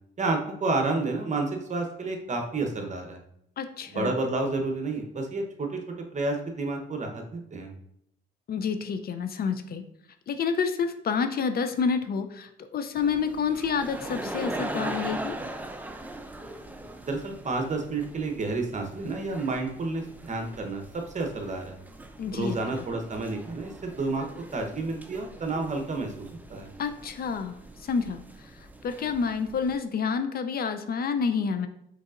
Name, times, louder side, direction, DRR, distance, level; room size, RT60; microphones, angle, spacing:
voice 1, 0.2-3.2 3.9-5.8 6.1-7.7 17.0-21.8 22.3-24.3 24.5-26.7, right 3 dB, 35° right, 4 dB, 0.9 m, -30 dB
voice 2, 3.6-4.1 8.5-9.8 10.3-15.4 22.2-22.6 26.8-27.5 27.8-28.2 28.8-31.7, left 6 dB, 50° left, 9 dB, 0.4 m, -28 dB
sound 1, 13.0-29.8, right 1 dB, 10° right, 0.5 m, -41 dB
5.1 x 4.0 x 2.5 m, 0.74 s
cardioid pair, 90°, 20 cm